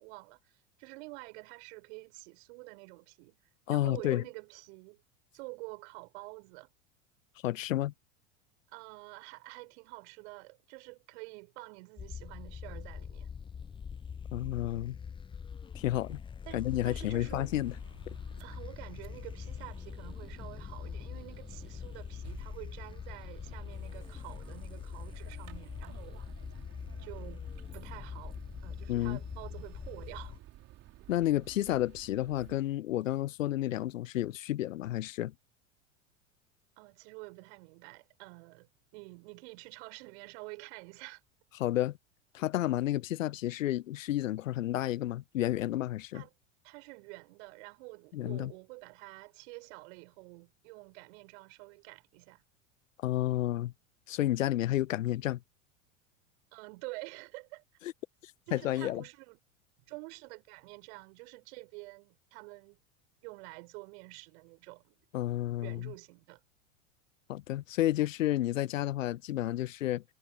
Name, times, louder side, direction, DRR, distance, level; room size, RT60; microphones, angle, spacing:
voice 1, 0.0-3.4 3.7-5.0 5.3-6.7 8.7-13.3 16.4-17.5 18.4-26.2 27.0-27.4 27.7-30.4 36.8-41.2 46.1-46.3 46.6-52.4 56.5-57.6 58.5-59.4 59.9-62.8 63.2-65.0 65.6-66.4, right 27 dB, 55° right, 4.7 m, -48 dB
voice 2, 3.7-4.2 7.4-7.9 14.3-15.0 15.7-16.2 16.5-17.7 28.9-29.2 31.1-35.3 41.6-42.0 42.3-46.2 48.1-48.5 53.0-53.7 54.1-55.4 58.5-59.0 65.1-65.9 67.3-70.0, left 14 dB, 75° left, 0.7 m, -31 dB
sound 1, 12.0-30.4, left 6 dB, 15° left, 0.6 m, -43 dB
sound 2, 16.6-32.6, right 14 dB, 40° right, 2.9 m, -54 dB
figure-of-eight pair, 85°, 40 cm